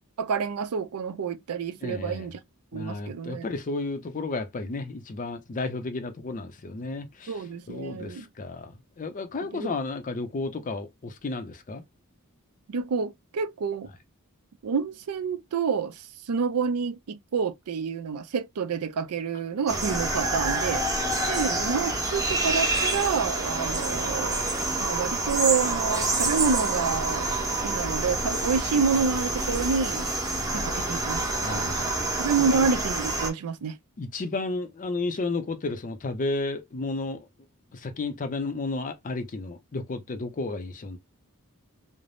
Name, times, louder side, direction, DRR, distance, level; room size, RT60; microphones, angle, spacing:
voice 1, 0.2-2.4 2.7-3.5 7.3-8.3 9.5-9.7 12.7-13.9 14.6-20.8 21.3-24.4 24.8-27.4 27.6-30.1 30.5-31.8 32.2-33.8, right 5 dB, 80° right, 0.4 m, -28 dB
voice 2, 1.8-2.3 2.7-11.8 21.6-21.7 31.4-32.1 32.4-32.7 34.0-37.3 37.7-41.0, left 3 dB, 35° left, 0.5 m, -33 dB
sound 1, 19.7-33.3, right 2 dB, 15° right, 0.7 m, -27 dB
3.2 x 2.0 x 2.5 m
head